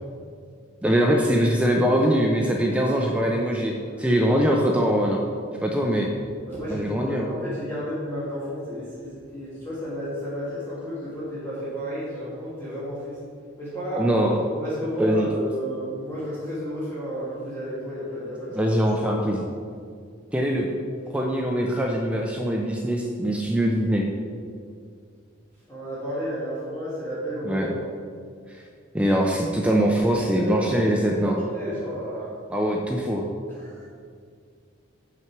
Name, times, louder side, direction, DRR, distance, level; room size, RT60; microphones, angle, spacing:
voice 1, 0.8-3.7 4.0-5.2 5.6-6.1 6.7-7.3 14.0-14.4 15.0-15.3 18.5-19.4 20.3-20.7 21.1-24.0 27.5-27.7 28.5-28.6 28.9-31.4 32.5-33.2, equal, 5° right, 0 dB, 0.5 m, -22 dB
voice 2, 3.8-4.2 6.5-13.2 13.6-14.1 14.5-18.6 25.7-27.7 30.2-32.3 33.6-33.9, equal, 10° left, -9 dB, 1.7 m, -32 dB
6.9 x 6.0 x 4.6 m, 2.2 s
head